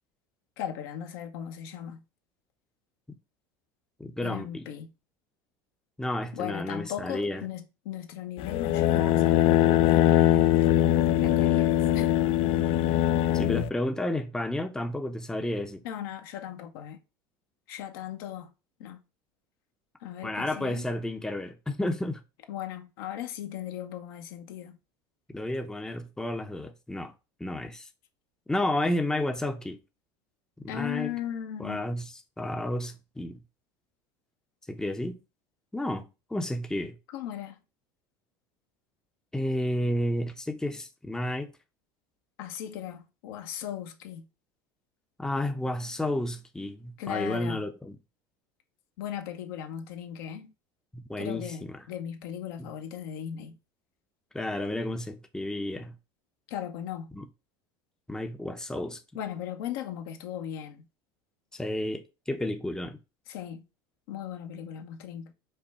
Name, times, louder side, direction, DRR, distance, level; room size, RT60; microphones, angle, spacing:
voice 1, 0.6-2.0 4.2-4.9 6.3-12.2 15.8-17.0 17.7-18.5 18.8-19.0 20.0-20.9 22.5-24.7 30.7-31.9 37.1-37.6 42.4-44.3 47.0-47.6 49.0-50.5 51.2-53.6 56.5-57.1 59.1-60.8 63.3-63.6 64.1-65.3, left 10 dB, 80° left, 0.8 m, -37 dB
voice 2, 4.0-4.7 6.0-7.4 13.3-15.8 20.2-22.2 25.3-27.1 27.4-27.9 28.5-29.8 30.6-31.1 31.6-33.4 34.7-35.2 35.7-36.1 36.3-36.9 39.3-41.5 45.2-48.0 50.9-51.9 52.6-52.7 54.3-55.9 57.1-57.2 58.1-59.0 61.5-63.0, left 1 dB, 5° left, 0.6 m, -31 dB
sound 1, 8.4-13.7, left 12 dB, 55° left, 0.4 m, -22 dB
5.3 x 2.2 x 4.1 m
supercardioid pair, 95°, 12 cm